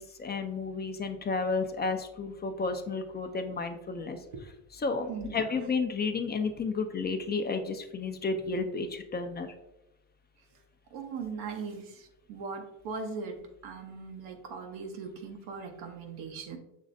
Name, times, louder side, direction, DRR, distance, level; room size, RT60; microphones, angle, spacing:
voice 1, 0.0-4.2 4.7-9.5, left 4 dB, 25° left, 7 dB, 0.5 m, -32 dB
voice 2, 5.1-5.4 10.9-16.6, right 5 dB, 80° right, 3 dB, 0.9 m, -39 dB
6.3 x 3.1 x 2.6 m, 0.89 s
supercardioid pair, 75°, 39 cm